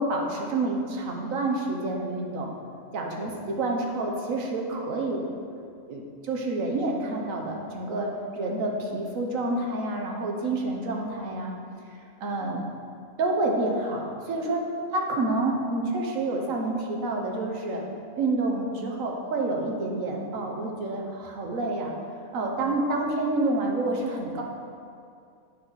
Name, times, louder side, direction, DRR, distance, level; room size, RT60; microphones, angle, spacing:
voice 1, 0.0-2.5 2.9-5.2 5.9-11.6 12.2-12.6 13.2-14.6 14.9-17.8 18.2-21.9 22.3-24.4, right 2 dB, 65° right, 1 dB, 1.4 m, -28 dB
9.2 x 4.0 x 6.2 m, 2.4 s
omnidirectional pair, 1.5 m